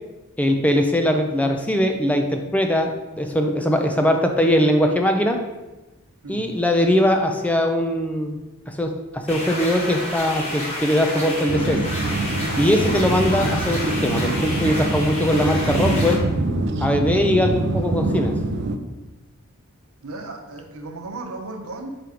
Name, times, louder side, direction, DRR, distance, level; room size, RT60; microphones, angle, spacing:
voice 1, 0.4-5.4 6.3-8.4 8.7-11.9 12.6-16.2 16.8-18.4, equal, 5° left, 4 dB, 0.4 m, -21 dB
sound 1, 9.3-16.1, left 1 dB, 30° left, 1.5 m, -30 dB
sound 2, 11.5-18.8, right 2 dB, 55° right, 0.5 m, -24 dB
voice 2, 20.0-22.0, right 2 dB, 85° right, 4 dB, 0.9 m, -36 dB
5.3 x 4.5 x 4.9 m, 1.1 s
head